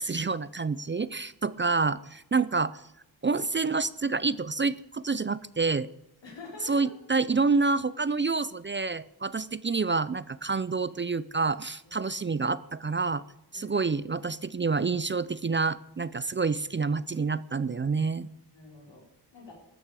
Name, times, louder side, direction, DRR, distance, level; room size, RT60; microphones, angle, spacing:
voice 1, 0.0-2.8 3.2-5.9 6.6-13.2 13.5-18.3, right 4 dB, 30° right, 18 dB, 0.4 m, -28 dB
voice 2, 6.2-6.9 11.8-12.1 13.5-13.8 14.1-14.6 18.5-19.0 19.3-19.5, left 3 dB, 90° left, 0 dB, 4.2 m, -48 dB
14.5 x 12.5 x 4.8 m, 0.89 s
wide cardioid pair, 120°, 42 cm